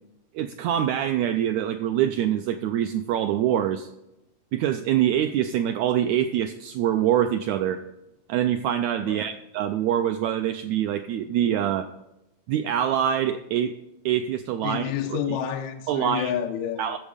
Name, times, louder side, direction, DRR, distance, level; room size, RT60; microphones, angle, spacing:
voice 1, 0.3-3.9 4.5-7.8 8.3-11.9 12.5-13.7 14.0-14.8 15.1-15.2 15.9-16.3 16.8-17.0, right 10 dB, 80° right, 8 dB, 1.6 m, -24 dB
voice 2, 9.0-9.3 14.6-17.0, left 9 dB, 70° left, 4 dB, 2.1 m, -29 dB
14.0 x 7.1 x 5.0 m, 0.90 s
omnidirectional pair, 3.7 m